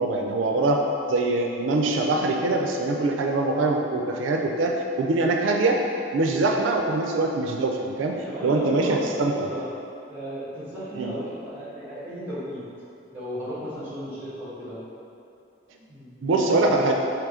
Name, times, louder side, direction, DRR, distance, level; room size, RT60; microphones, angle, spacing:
voice 1, 0.0-5.8 6.1-9.5 11.0-11.1 16.2-16.9, right 2 dB, 90° right, 2 dB, 0.4 m, -23 dB
voice 2, 8.2-9.6 10.1-12.6 13.1-14.8 15.9-16.9, equal, 10° right, -11 dB, 1.3 m, -34 dB
3.6 x 2.9 x 4.8 m, 2.5 s
head